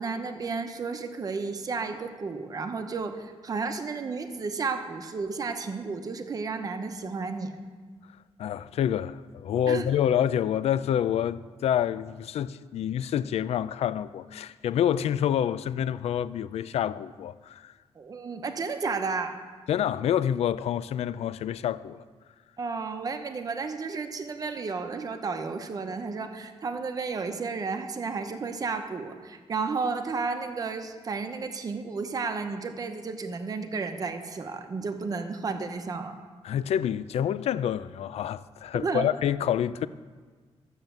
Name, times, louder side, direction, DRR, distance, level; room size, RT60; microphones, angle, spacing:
voice 1, 0.0-7.5 9.7-9.9 18.0-19.3 22.6-36.2 38.7-39.1, right 4 dB, 35° right, 0.9 m, -32 dB
voice 2, 8.4-17.7 19.7-22.0 36.4-39.9, left 10 dB, 70° left, 0.4 m, -27 dB
12.5 x 7.3 x 7.9 m
wide cardioid pair, 170°, 11 cm